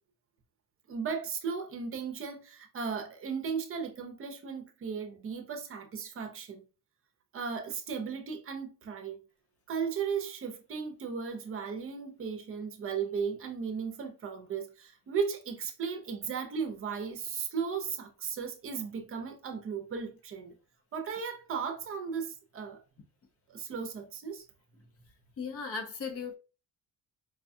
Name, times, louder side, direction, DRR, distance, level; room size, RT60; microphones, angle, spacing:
voice 1, 0.9-6.6 7.3-9.2 9.7-20.5 20.9-22.8 23.5-24.5, right 6 dB, 40° right, 0.7 m, -36 dB
voice 2, 25.4-26.4, left 5 dB, 45° left, 0.7 m, -36 dB
4.8 x 2.3 x 2.6 m
cardioid pair, 155°, 33 cm